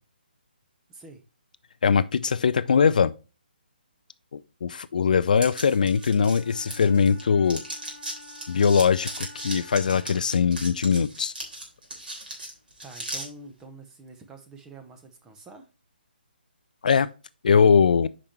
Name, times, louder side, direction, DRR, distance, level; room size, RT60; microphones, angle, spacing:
voice 1, 0.9-1.2 12.8-15.7, right 3 dB, 10° right, 0.9 m, -46 dB
voice 2, 1.8-3.1 4.3-7.6 8.5-11.3 16.8-17.1 17.4-18.1, left 6 dB, 55° left, 0.3 m, -21 dB
sound 1, 5.4-7.2 7.5-13.3, right 1 dB, 65° right, 3.4 m, -37 dB
Wind instrument woodwind instrument, 5.5-10.3, left 2 dB, 45° right, 2.3 m, -48 dB
8.5 x 5.2 x 3.0 m
figure-of-eight pair, 140°, 5 cm